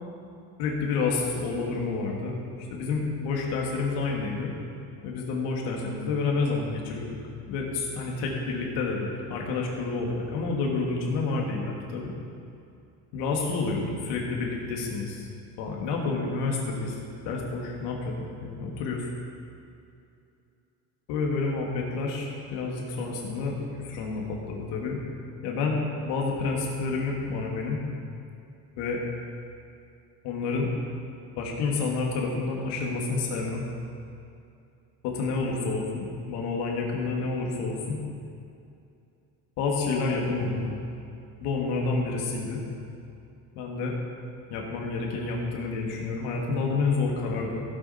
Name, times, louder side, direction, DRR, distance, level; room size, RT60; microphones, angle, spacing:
voice 1, 0.6-4.5 5.0-7.2 7.5-12.1 13.1-15.3 15.6-19.0 21.1-25.0 25.4-27.8 28.8-29.0 30.2-30.7 31.4-33.6 35.0-38.0 39.6-40.7 41.4-42.6 43.5-43.9 44.5-47.6, left 4 dB, 90° left, -1 dB, 2.4 m, -29 dB
16.0 x 8.4 x 4.4 m, 2.5 s
cardioid pair, 125°, 39 cm